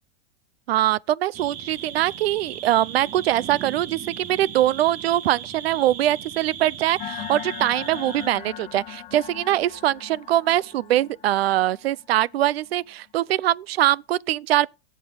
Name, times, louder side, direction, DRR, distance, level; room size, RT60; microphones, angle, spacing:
voice 1, 0.7-14.7, right 14 dB, 75° right, 0.6 m, -22 dB
sound 1, 1.3-8.3, right 8 dB, 25° right, 1.6 m, -38 dB
sound 2, 7.0-12.6, left 11 dB, 25° left, 1.7 m, -39 dB
16.5 x 6.9 x 5.7 m
supercardioid pair, 160°, 30 cm